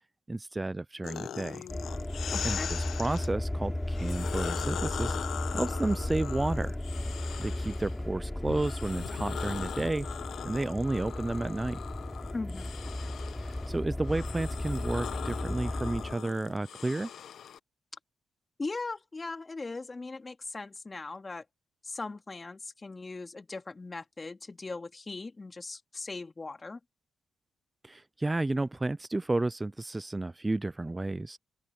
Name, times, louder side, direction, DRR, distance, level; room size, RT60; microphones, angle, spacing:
voice 1, 0.3-1.7 2.4-5.2 5.5-6.8 7.4-10.1 10.4-11.8 13.4-17.1 27.8-31.4, right 2 dB, 20° right, 0.5 m, -32 dB
sound 1, 1.0-3.3 3.9-8.0 8.4-17.6, left 9 dB, 70° left, 1.0 m, -40 dB
sound 2, 1.7-16.2, left 1 dB, 15° left, 3.8 m, -35 dB
voice 2, 2.3-2.7 12.3-12.7 18.6-21.4 21.8-26.8, left 3 dB, 35° left, 2.5 m, -39 dB
open air
supercardioid pair, 50°, 0 cm